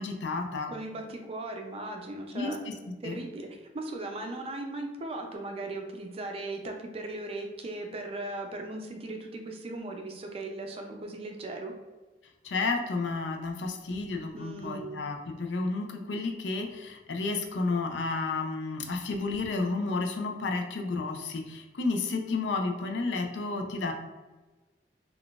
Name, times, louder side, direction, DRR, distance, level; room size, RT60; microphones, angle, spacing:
voice 1, 0.0-0.7 2.3-2.7 3.0-3.2 12.4-23.9, left 3 dB, 90° left, 3 dB, 0.5 m, -31 dB
voice 2, 0.7-2.6 3.0-11.7 14.3-15.0, right 2 dB, 35° right, 3 dB, 0.4 m, -38 dB
3.7 x 2.3 x 2.4 m, 1.2 s
head